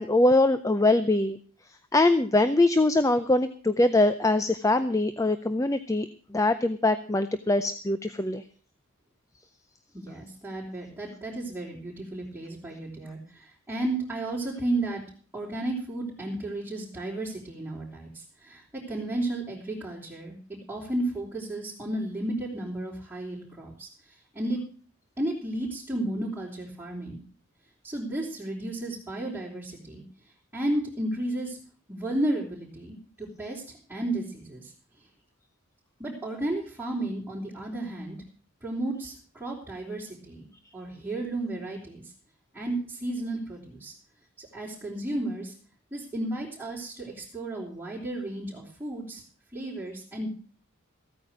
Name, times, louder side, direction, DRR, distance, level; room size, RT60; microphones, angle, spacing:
voice 1, 0.0-1.4 1.9-8.4, left 2 dB, 15° left, 11 dB, 0.5 m, -23 dB
voice 2, 9.9-15.0 15.3-18.1 18.4-23.9 24.3-24.6 25.2-27.2 27.8-30.0 30.5-31.6 31.9-33.6 33.9-34.7 36.0-38.2 38.6-40.5 40.7-42.0 42.5-43.9 44.4-45.5 45.9-49.2 49.5-50.3, right 1 dB, 10° right, -8 dB, 3.9 m, -33 dB
15.0 x 9.0 x 6.3 m, 0.42 s
head